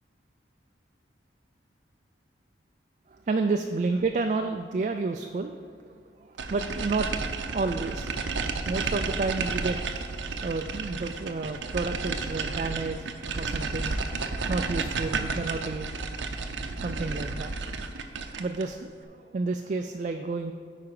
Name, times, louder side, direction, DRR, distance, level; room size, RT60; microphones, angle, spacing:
voice 1, 3.1-8.1 8.6-9.8 10.4-13.1 13.4-14.0 14.5-15.9 16.8-17.5 18.4-20.5, right 3 dB, 40° right, 5 dB, 0.3 m, -30 dB
sound 1, 6.4-18.7, right 4 dB, 80° right, 0.6 m, -32 dB
9.4 x 4.9 x 4.8 m, 2.2 s
head